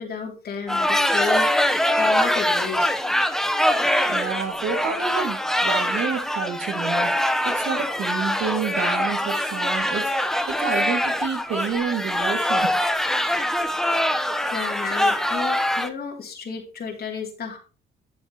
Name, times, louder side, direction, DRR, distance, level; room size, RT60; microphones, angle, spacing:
voice 1, 0.0-3.1 14.5-17.6, left 6 dB, 50° left, 2 dB, 3.0 m, -33 dB
sound 1, 0.7-15.9, left 1 dB, ahead, 0.9 m, -23 dB
voice 2, 4.1-12.7, right 6 dB, 75° right, 4 dB, 2.4 m, -29 dB
10.5 x 7.8 x 3.0 m, 0.34 s
cardioid pair, 90°, 20 cm